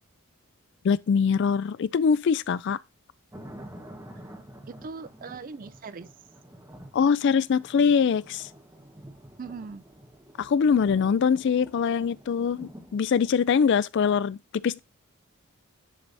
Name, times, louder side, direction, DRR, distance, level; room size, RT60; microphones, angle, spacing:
voice 1, 0.8-2.8 6.9-8.5 10.4-14.8, left 6 dB, 50° left, 0.3 m, -23 dB
sound 1, 3.3-13.3, right 1 dB, 10° right, 1.3 m, -48 dB
voice 2, 4.7-6.1 9.4-9.8, right 4 dB, 40° right, 0.4 m, -40 dB
10.0 x 3.4 x 4.1 m
head